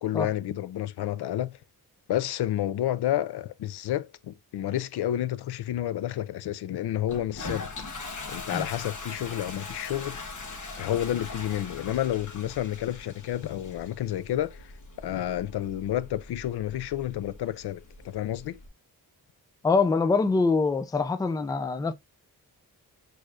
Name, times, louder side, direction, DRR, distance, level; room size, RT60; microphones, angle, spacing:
voice 1, 0.0-1.6 2.1-7.7 8.3-10.2 10.8-14.7 15.0-18.6, left 12 dB, 90° left, 0.5 m, -30 dB
Toilet flush, 7.1-18.7, left 3 dB, 50° left, 1.2 m, -41 dB
voice 2, 19.6-21.9, left 4 dB, 10° left, 0.3 m, -24 dB
6.5 x 3.1 x 2.5 m
wide cardioid pair, 165°, 38 cm